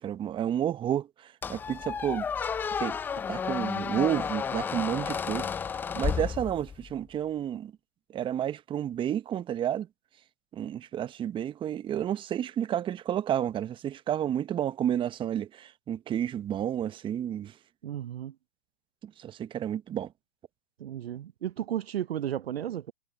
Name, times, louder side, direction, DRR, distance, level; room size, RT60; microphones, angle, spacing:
voice 1, 0.0-2.3 2.8-3.0 3.3-5.5 5.9-7.7 8.1-9.9 10.5-17.5 19.0-20.1, right 10 dB, 15° right, 0.9 m, -31 dB
Squeak, 1.4-6.9, left 6 dB, 5° left, 0.4 m, -32 dB
voice 2, 17.8-18.3 20.8-22.9, right 11 dB, 65° right, 0.7 m, -34 dB
hypercardioid pair, 120°, 32 cm